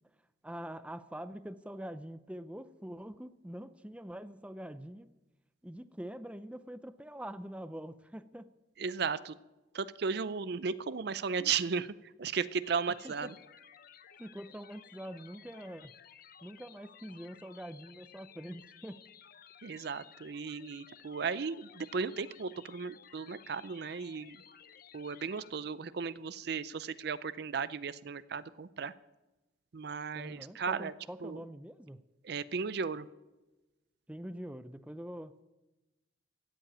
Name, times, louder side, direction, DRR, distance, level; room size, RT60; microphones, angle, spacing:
voice 1, 0.4-5.1 5.6-8.5 13.0-13.3 14.2-15.9 16.4-19.0 30.1-32.0 34.1-35.4, right 1 dB, 5° right, 11 dB, 0.5 m, -44 dB
voice 2, 8.8-9.4 9.7-13.3 19.6-24.4 24.9-28.9 29.7-30.9 31.2-31.4 32.2-33.1, right 5 dB, 60° right, 15 dB, 0.5 m, -35 dB
sound 1, 12.6-25.5, left 8 dB, 50° left, 0.6 m, -56 dB
16.5 x 7.7 x 9.1 m, 1.1 s
head